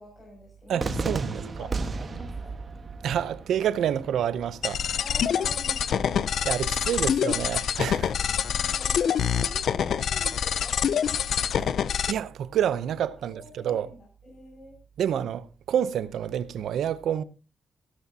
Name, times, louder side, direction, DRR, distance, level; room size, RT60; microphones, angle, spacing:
voice 1, 0.0-2.5 5.0-6.2 8.1-11.3 13.3-14.8, left 1 dB, 35° left, 6.0 m, -46 dB
voice 2, 0.7-1.7 3.0-4.8 6.4-8.1 11.6-11.7 12.1-13.9 15.0-17.2, right 9 dB, 85° right, 0.7 m, -28 dB
Cheering / Fireworks, 0.8-6.8, right 3 dB, 35° right, 1.4 m, -35 dB
sound 1, 4.6-12.1, left 8 dB, 70° left, 0.5 m, -26 dB
16.0 x 13.5 x 2.8 m
wide cardioid pair, 135°, 0 cm